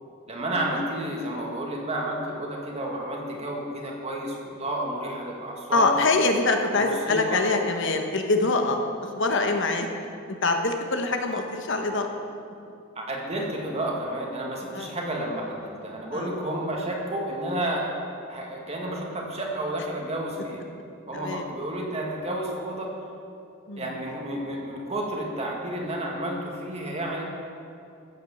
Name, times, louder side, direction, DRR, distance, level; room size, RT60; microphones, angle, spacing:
voice 1, 0.3-6.3 6.7-7.4 13.0-17.9 18.3-20.6 21.1-22.9 23.8-27.2, right 1 dB, 30° right, -1 dB, 2.0 m, -31 dB
voice 2, 5.7-8.8 9.2-9.9 10.4-12.1 14.7-14.9 16.1-16.3 21.1-21.4 23.7-23.9, left 3 dB, 60° left, 4 dB, 1.3 m, -24 dB
15.0 x 8.2 x 7.2 m, 2.6 s
head